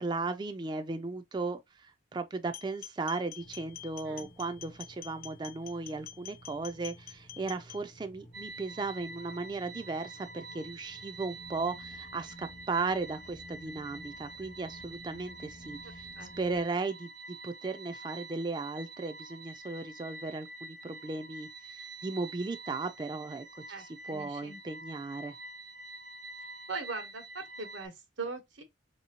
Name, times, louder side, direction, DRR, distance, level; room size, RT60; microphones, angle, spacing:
voice 1, 0.0-16.1 16.4-17.1 17.4-25.4, right 3 dB, 25° right, 0.3 m, -36 dB
sound 1, 2.5-7.8, left 12 dB, 45° left, 0.4 m, -47 dB
sound 2, 3.4-16.6, equal, 65° left, 1.0 m, -54 dB
sound 3, 8.3-27.9, right 2 dB, 70° right, 0.6 m, -47 dB
voice 2, 23.7-24.6 26.7-28.6, right 4 dB, 90° right, 1.1 m, -40 dB
4.2 x 2.8 x 2.8 m
head